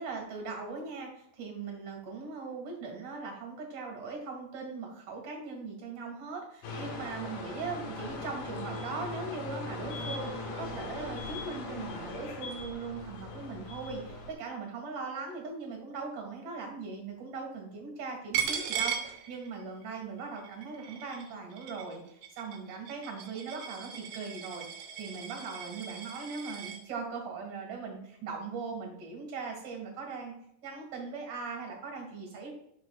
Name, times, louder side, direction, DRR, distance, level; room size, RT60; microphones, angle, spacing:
voice 1, 0.0-22.0 22.3-30.3 30.6-32.5, right 4 dB, 45° right, 1 dB, 2.3 m, -40 dB
sound 1, 6.6-14.3, left 2 dB, 75° left, 3.4 m, -39 dB
Coin (dropping), 18.3-19.8 20.2-26.8, right 8 dB, 85° right, 2.8 m, -38 dB
12.0 x 5.6 x 2.4 m, 0.77 s
omnidirectional pair, 4.4 m